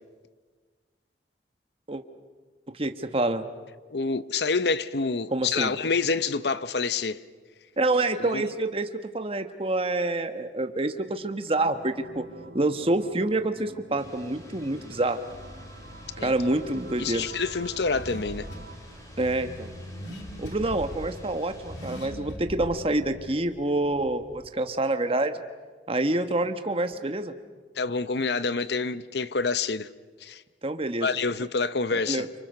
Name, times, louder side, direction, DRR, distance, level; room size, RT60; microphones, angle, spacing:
voice 1, 2.7-3.5 5.3-5.7 7.8-8.9 9.1-12.2 12.5-15.2 16.2-17.3 19.2-19.7 20.4-25.4 25.9-27.3 30.6-31.1 31.9-32.3, right 2 dB, 30° right, 1.3 m, -27 dB
voice 2, 3.9-7.2 8.2-8.4 16.2-16.3 17.0-18.5 27.8-29.9 30.2-30.4 31.0-32.3, left 4 dB, 65° left, 0.8 m, -27 dB
sound 1, 11.7-18.8, right 2 dB, 70° right, 2.4 m, -47 dB
sound 2, 14.0-22.1, equal, 20° left, 4.4 m, -50 dB
Car / Accelerating revving vroom, 15.3-24.5, equal, 85° left, 3.1 m, -42 dB
29.5 x 25.5 x 6.7 m
head